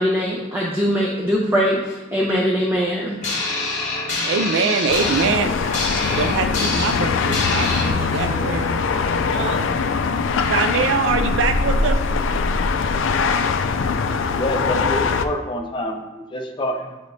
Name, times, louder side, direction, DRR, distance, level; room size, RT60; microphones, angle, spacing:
voice 1, 0.0-3.2, equal, 10° right, -4 dB, 0.7 m, -21 dB
sound 1, 3.2-7.9, left 3 dB, 40° left, 1.4 m, -26 dB
voice 2, 4.2-5.5 6.0-8.7 9.3-9.6 10.4-12.0, right 5 dB, 70° right, 7 dB, 0.4 m, -23 dB
sound 2, 4.9-15.3, left 4 dB, 75° left, 0.4 m, -22 dB
sound 3, 7.6-9.6, right 1 dB, 35° right, 1.3 m, -33 dB
voice 3, 14.3-17.0, left 1 dB, 25° left, 3 dB, 0.6 m, -27 dB
7.7 x 5.0 x 2.7 m, 1.0 s
head